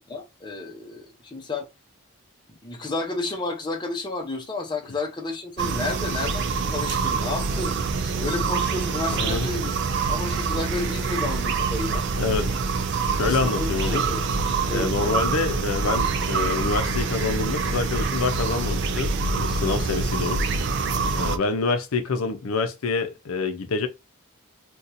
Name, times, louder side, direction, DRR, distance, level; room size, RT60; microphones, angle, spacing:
voice 1, 0.1-1.7 2.6-9.8 10.1-12.0 13.2-14.2 14.7-15.2, left 3 dB, 20° left, 0.6 m, -31 dB
sound 1, 5.6-21.4, right 4 dB, 50° right, 0.4 m, -25 dB
voice 2, 9.1-9.5 12.2-12.6 13.0-14.1 14.7-20.4 21.1-23.9, left 4 dB, 80° left, 0.5 m, -27 dB
2.6 x 2.3 x 4.1 m
head